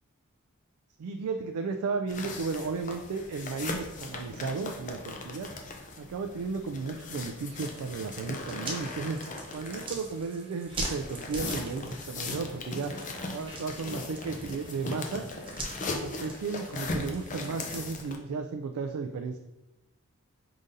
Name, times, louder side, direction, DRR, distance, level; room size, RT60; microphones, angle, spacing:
voice 1, 1.0-5.5 6.0-9.2 9.5-13.0 13.3-15.3 15.8-19.4, right 4 dB, 85° right, 5 dB, 0.3 m, -34 dB
sound 1, 2.1-10.2 10.7-18.2, left 3 dB, 35° left, 0.5 m, -39 dB
sound 2, 7.6-17.8, right 2 dB, 25° right, 0.7 m, -43 dB
5.0 x 3.8 x 2.7 m, 0.98 s
head